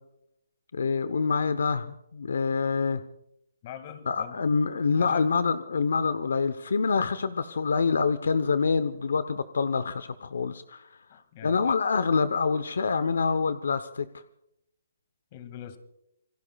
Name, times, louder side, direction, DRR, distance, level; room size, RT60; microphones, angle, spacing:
voice 1, 0.7-3.0 4.1-10.9 11.4-14.1, left 5 dB, 80° left, 13 dB, 0.9 m, -26 dB
voice 2, 3.6-4.5 4.9-5.3 11.1-11.8 15.3-15.8, left 9 dB, 35° left, 10 dB, 2.1 m, -42 dB
28.0 x 20.5 x 2.4 m, 0.80 s
hypercardioid pair, 150°, 0 cm